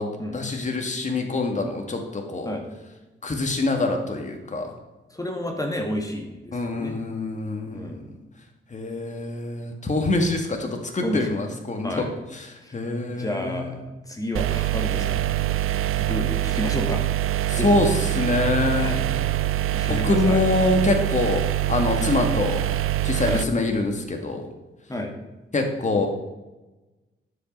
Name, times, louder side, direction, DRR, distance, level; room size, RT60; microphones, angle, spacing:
voice 1, 0.0-2.6 3.2-4.7 6.5-8.0 8.7-12.1 12.3-13.7 17.5-18.9 19.8-21.4 21.7-22.6 23.0-24.5 25.5-26.1, left 2 dB, 35° left, 3 dB, 2.1 m, -25 dB
voice 2, 5.1-6.9 7.6-8.1 11.0-11.3 11.8-12.2 12.6-12.7 13.2-15.3 16.0-17.1 17.5-17.8 18.7-19.0 19.7-20.4 23.2-23.4 24.9-25.1, left 1 dB, 15° left, 3 dB, 2.1 m, -31 dB
sound 1, 14.3-23.4, right 13 dB, 90° right, 0.5 m, -24 dB
11.0 x 7.8 x 5.6 m, 1.1 s
wide cardioid pair, 100°, 21 cm